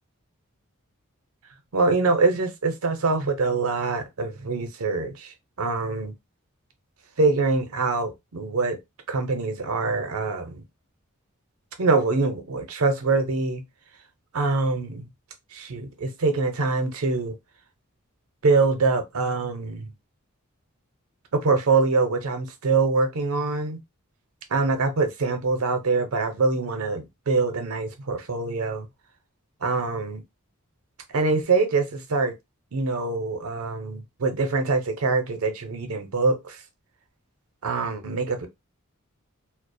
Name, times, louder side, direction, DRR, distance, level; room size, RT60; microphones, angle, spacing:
voice 1, 1.7-6.1 7.2-8.8 9.1-10.6 11.8-13.6 14.3-15.1 15.5-17.4 18.4-19.9 21.3-23.8 24.5-28.9 29.6-30.2 31.1-32.3 32.7-36.6 37.6-38.5, right 3 dB, 75° right, 0.6 m, -24 dB
2.3 x 2.0 x 2.5 m
head